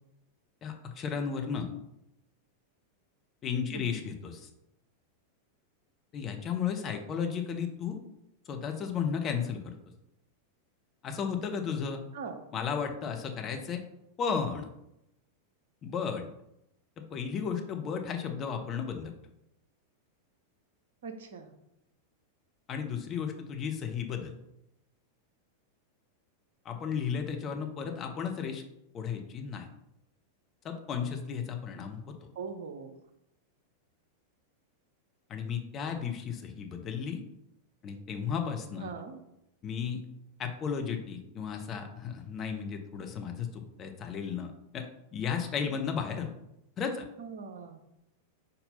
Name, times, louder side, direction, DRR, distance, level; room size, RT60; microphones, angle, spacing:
voice 1, 0.6-1.7 3.4-4.5 6.1-8.0 8.4-9.8 11.0-12.0 12.5-13.8 14.2-14.7 15.8-16.2 17.1-19.1 22.7-24.3 26.6-28.6 28.9-29.7 30.6-32.1 35.3-37.2 37.8-38.9 39.6-40.0 40.4-44.9 45.1-46.3 46.8-47.1, left 6 dB, 30° left, 4 dB, 1.0 m, -34 dB
voice 2, 21.0-21.5 32.3-32.9 38.8-39.2 47.2-47.8, right 5 dB, 60° right, 7 dB, 0.9 m, -41 dB
5.4 x 4.4 x 5.5 m, 0.84 s
figure-of-eight pair, 90°, 0 cm